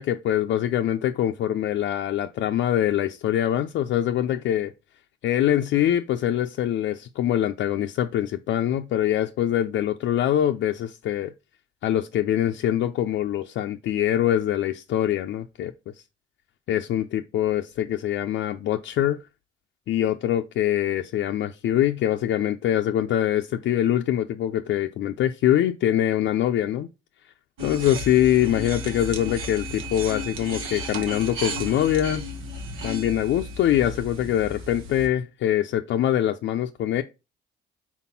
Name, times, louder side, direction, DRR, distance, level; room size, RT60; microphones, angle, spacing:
voice 1, 0.0-4.7 5.2-11.3 11.8-15.7 16.7-19.2 19.9-26.9 27.6-32.2 32.8-37.0, left 11 dB, 70° left, 0.5 m, -24 dB
sound 1, 27.6-35.1, equal, 85° right, 1.2 m, -34 dB
4.2 x 4.1 x 5.6 m
cardioid pair, 90°, 20 cm